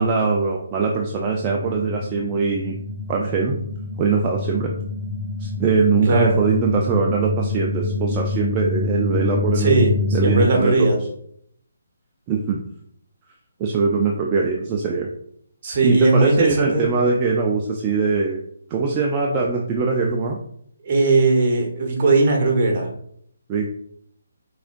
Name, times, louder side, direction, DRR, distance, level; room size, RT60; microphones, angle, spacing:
voice 1, 0.0-2.8 3.1-3.6 4.0-4.7 5.4-9.7 10.1-11.0 12.3-12.6 13.6-15.1 15.8-18.4 18.7-20.4 23.5-23.7, right 4 dB, 25° right, 0 dB, 0.5 m, -22 dB
sound 1, 1.1-10.5, left 3 dB, 10° left, 1.6 m, -26 dB
voice 2, 9.5-11.0 15.6-16.8 20.8-22.9, right 3 dB, 45° right, 0 dB, 1.3 m, -18 dB
4.9 x 3.6 x 2.5 m, 0.69 s
figure-of-eight pair, 150°, 0 cm